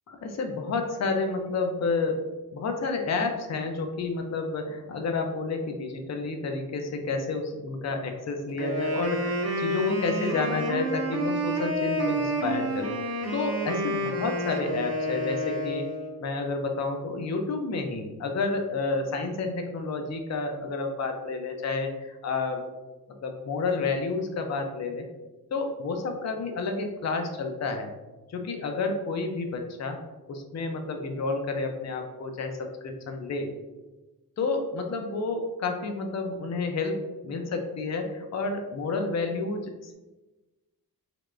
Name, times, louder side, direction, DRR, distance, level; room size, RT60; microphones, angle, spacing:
voice 1, 0.1-2.2 2.5-15.8 16.2-22.6 23.2-25.1 25.5-27.9 28.3-30.0 30.3-33.5 34.4-39.9, left 3 dB, 45° left, 4 dB, 0.5 m, -30 dB
Wind instrument woodwind instrument, 8.6-16.2, equal, 40° right, 0.7 m, -29 dB
3.4 x 3.2 x 2.4 m, 1.1 s
wide cardioid pair, 110°, 37 cm